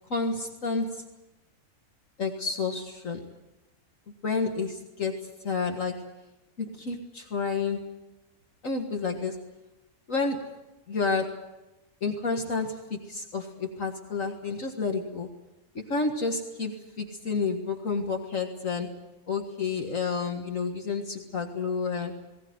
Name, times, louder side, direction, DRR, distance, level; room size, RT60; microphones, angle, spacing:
voice 1, 0.1-1.0 2.2-3.2 4.2-6.0 6.6-7.9 8.6-9.4 10.1-10.4 10.9-11.3 12.0-15.3 15.8-18.9 19.3-22.1, left 4 dB, 60° left, 3 dB, 2.1 m, -30 dB
19.5 x 19.0 x 9.5 m, 1.0 s
omnidirectional pair, 1.6 m